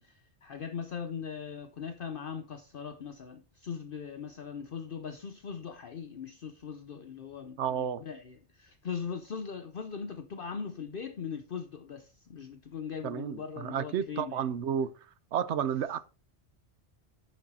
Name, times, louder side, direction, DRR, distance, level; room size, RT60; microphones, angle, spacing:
voice 1, 0.0-14.4, left 6 dB, 55° left, 0.9 m, -40 dB
voice 2, 7.6-8.0 13.0-14.9 15.3-16.0, right 8 dB, 80° right, 1.0 m, -31 dB
10.0 x 6.4 x 4.2 m
omnidirectional pair, 1.2 m